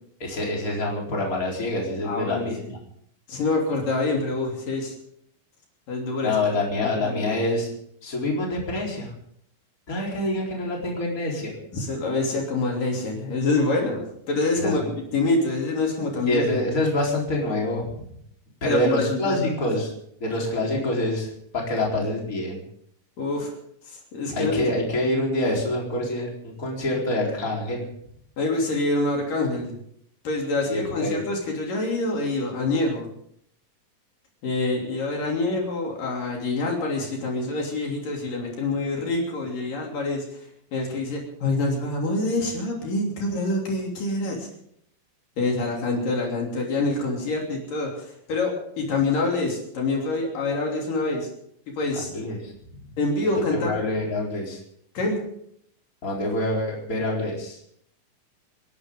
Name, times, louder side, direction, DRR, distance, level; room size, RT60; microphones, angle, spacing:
voice 1, 0.2-2.8 6.2-7.7 8.0-9.1 9.9-11.5 14.6-14.9 16.3-18.1 18.6-19.9 20.2-22.6 24.3-27.9 30.7-31.2 51.9-52.8 53.2-54.6 56.0-57.6, left 1 dB, 25° left, -2 dB, 4.4 m, -26 dB
voice 2, 2.0-2.7 3.3-4.9 5.9-6.3 6.8-7.4 11.7-14.0 14.3-14.8 15.1-16.4 18.6-19.5 23.2-23.5 23.8-24.7 28.4-29.8 30.2-33.1 34.4-44.5 45.4-51.3 51.7-52.1 53.0-53.8 54.9-55.2, left 2 dB, 65° left, -1 dB, 4.7 m, -26 dB
29.5 x 12.0 x 3.8 m, 0.69 s
omnidirectional pair, 4.1 m